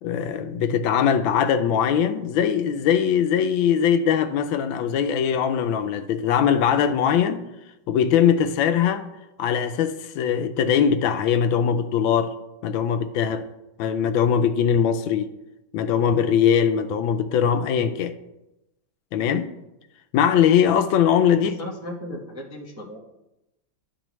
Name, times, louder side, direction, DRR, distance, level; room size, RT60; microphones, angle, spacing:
voice 1, 0.0-7.4 7.9-9.1 9.4-12.3 12.6-13.5 13.8-15.3 15.7-18.1 19.1-19.5 20.1-21.6, left 8 dB, 80° left, 1.3 m, -21 dB
voice 2, 21.4-23.0, left 1 dB, 20° right, 0.4 m, -36 dB
12.0 x 4.6 x 3.0 m
omnidirectional pair, 2.2 m